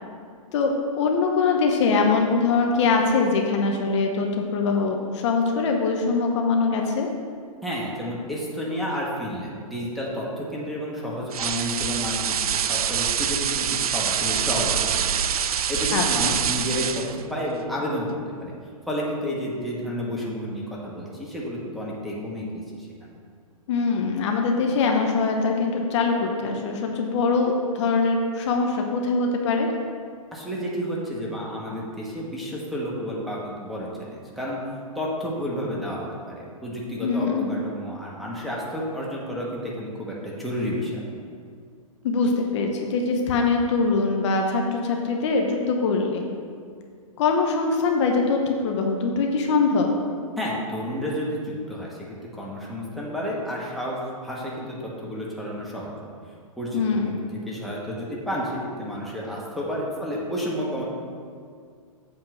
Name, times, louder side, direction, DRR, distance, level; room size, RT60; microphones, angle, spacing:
voice 1, 0.5-7.1 15.9-16.4 23.7-29.7 37.0-37.5 42.0-46.2 47.2-50.0 56.7-57.2, left 4 dB, 55° left, 2 dB, 0.9 m, -23 dB
voice 2, 7.6-15.2 15.5-18.5 18.9-23.1 30.3-34.6 34.9-41.0 50.4-55.9 56.6-57.2 57.5-60.8, equal, ahead, -5 dB, 1.3 m, -31 dB
sound 1, 11.3-17.2, right 8 dB, 80° right, 0.4 m, -25 dB
7.7 x 3.8 x 5.9 m, 2.2 s
hypercardioid pair, 125°, 18 cm